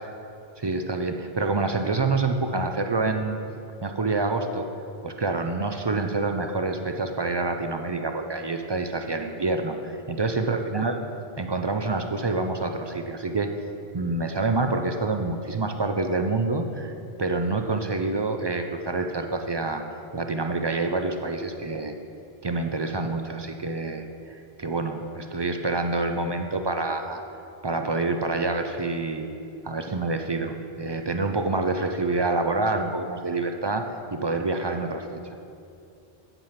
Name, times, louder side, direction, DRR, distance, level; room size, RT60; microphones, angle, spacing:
voice 1, 0.6-3.4 3.8-4.7 5.0-11.0 11.4-13.5 13.9-19.8 20.1-21.9 22.4-27.2 27.6-29.3 29.6-33.9 34.1-35.4, right 3 dB, 45° right, 6 dB, 0.3 m, -27 dB
8.9 x 8.0 x 5.7 m, 2.6 s
omnidirectional pair, 1.1 m